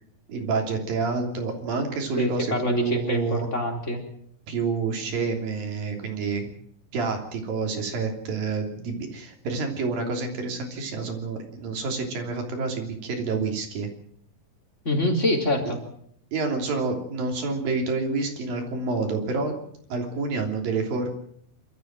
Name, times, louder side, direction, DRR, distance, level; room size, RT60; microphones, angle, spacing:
voice 1, 0.3-3.5 4.5-6.5 6.9-13.9 16.3-19.6 19.9-21.1, right 4 dB, 80° right, 3 dB, 5.0 m, -28 dB
voice 2, 2.2-4.0 14.8-15.8, left 1 dB, 20° left, 2 dB, 3.7 m, -25 dB
26.5 x 13.5 x 7.6 m, 0.67 s
omnidirectional pair, 4.0 m